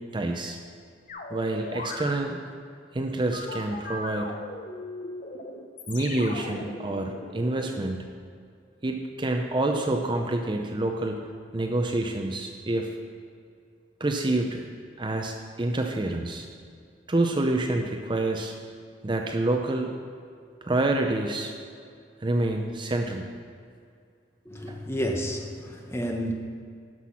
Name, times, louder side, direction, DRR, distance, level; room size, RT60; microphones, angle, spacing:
voice 1, 0.1-0.6 1.3-2.4 2.9-4.4 5.9-8.0 8.8-11.2 11.5-12.9 14.0-14.7 15.0-16.5 17.1-18.5 19.0-19.9 20.6-21.5 22.2-23.3 24.7-24.8, right 2 dB, 25° right, 3 dB, 0.6 m, -27 dB
sound 1, 1.1-2.2 3.3-7.7, left 2 dB, 45° left, 0.8 m, -38 dB
voice 2, 24.4-26.3, equal, 15° left, 2 dB, 1.0 m, -30 dB
12.0 x 6.0 x 5.7 m, 2.3 s
head